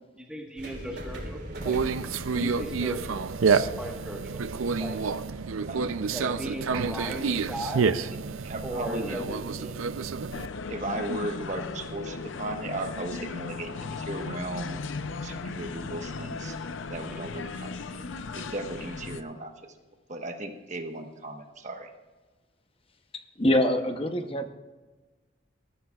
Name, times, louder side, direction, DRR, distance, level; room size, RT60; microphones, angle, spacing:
voice 1, 0.2-1.8 2.3-3.2 3.6-4.4 4.8-5.0 6.1-7.9 8.6-9.8, equal, 5° right, 0 dB, 1.4 m, -37 dB
sound 1, 0.6-6.5, right 1 dB, 55° right, 3.0 m, -42 dB
Conversation, 1.6-10.5, right 5 dB, 90° right, 0.5 m, -28 dB
voice 2, 5.7-6.0 8.1-8.2 8.4-9.2 10.7-14.8 15.2-16.6 16.9-18.1 18.3-19.7 20.1-21.9, right 1 dB, 35° right, 4 dB, 1.2 m, -36 dB
sound 2, 10.3-19.2, left 4 dB, 70° left, 0.6 m, -36 dB
voice 3, 23.1-24.5, left 1 dB, 25° left, 7 dB, 0.8 m, -25 dB
21.5 x 13.5 x 2.4 m, 1.2 s
head